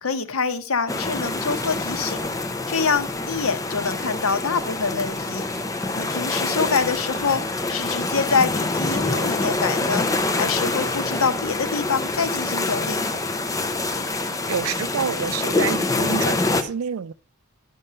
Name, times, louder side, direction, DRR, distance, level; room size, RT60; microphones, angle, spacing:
voice 1, 0.0-2.2 2.7-5.4 6.0-7.4 7.7-10.1 10.4-13.1, left 5 dB, 80° left, 0.8 m, -25 dB
sound 1, 0.9-16.6, left 2 dB, 15° left, 0.7 m, -26 dB
voice 2, 14.5-17.1, right 7 dB, 85° right, 0.4 m, -28 dB
11.0 x 5.3 x 5.6 m
head